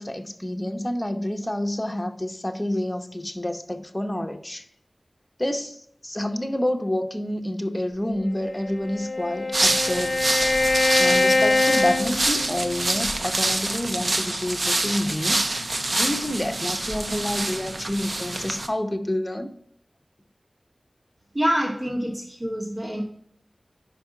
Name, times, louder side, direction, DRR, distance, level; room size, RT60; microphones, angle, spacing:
voice 1, 0.0-4.6 5.4-10.2 11.0-15.4 15.9-19.5, left 1 dB, 15° left, 5 dB, 1.0 m, -28 dB
Bowed string instrument, 8.5-12.9, left 2 dB, 50° left, 0.7 m, -23 dB
sound 1, 9.5-18.7, right 2 dB, 60° right, 0.8 m, -26 dB
voice 2, 21.3-23.0, equal, 40° right, -3 dB, 2.6 m, -26 dB
5.3 x 5.3 x 5.8 m, 0.66 s
wide cardioid pair, 70°, 0 cm